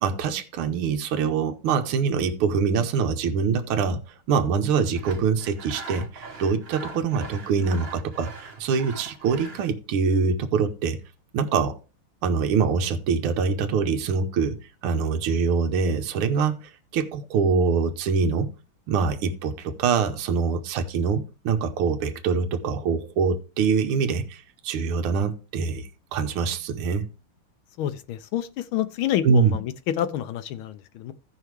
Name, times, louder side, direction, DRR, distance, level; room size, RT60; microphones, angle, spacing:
voice 1, 0.0-4.0 4.3-11.0 11.3-11.8 12.2-18.5 18.9-27.1 29.2-29.6, right 5 dB, 75° right, 1.8 m, -24 dB
Sawing, 4.9-9.8, right 3 dB, 40° right, 0.9 m, -41 dB
voice 2, 27.8-31.1, left 11 dB, 75° left, 1.3 m, -28 dB
15.5 x 5.6 x 3.2 m
omnidirectional pair, 2.4 m